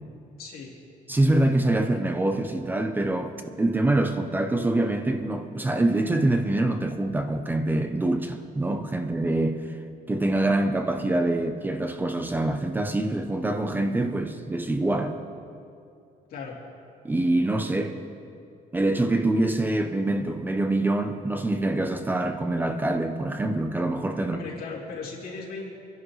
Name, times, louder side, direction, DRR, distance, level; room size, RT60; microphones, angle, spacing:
voice 1, 0.4-0.8 16.3-16.6 24.3-25.7, left 4 dB, 85° left, 2.8 m, -37 dB
voice 2, 1.1-9.8 10.1-15.2 17.0-18.0 18.7-24.4, right 2 dB, 10° right, 0.6 m, -25 dB
25.5 x 11.0 x 3.1 m
cardioid pair, 170°, 15 cm